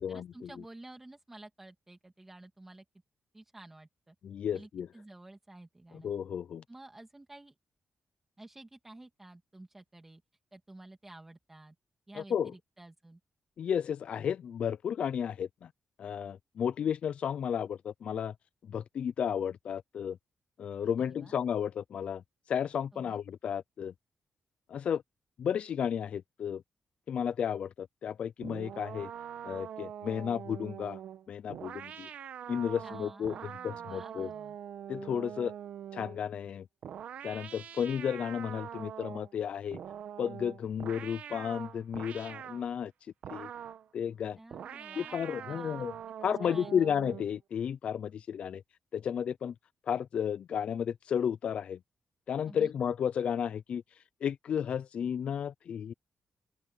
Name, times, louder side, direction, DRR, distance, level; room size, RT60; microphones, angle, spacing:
voice 1, 0.0-2.8 3.3-4.2 4.5-6.1 6.7-7.5 8.4-10.2 10.5-11.8 12.1-13.2 21.1-21.4 22.9-23.2 32.8-34.6 44.4-45.9 46.4-46.9 52.4-52.7, right 2 dB, 15° right, 1.9 m, -51 dB
voice 2, 4.2-4.9 6.0-6.6 12.2-12.5 13.6-15.7 16.0-18.3 18.7-20.2 20.6-22.2 22.5-23.9 24.7-25.0 25.4-26.6 27.1-29.1 29.4-31.0 31.3-32.1 32.5-33.3 33.6-34.3 34.9-35.5 35.9-36.7 37.2-39.8 40.2-43.5 43.9-44.4 45.0-45.9 46.2-48.6 48.9-49.5 49.9-51.8 52.3-55.9, left 8 dB, 55° left, 0.3 m, -33 dB
sound 1, 28.4-36.2 36.8-39.3 39.7-42.7 43.2-43.9 44.5-47.3, right 9 dB, 80° right, 1.0 m, -44 dB
open air
wide cardioid pair, 160°, 2 cm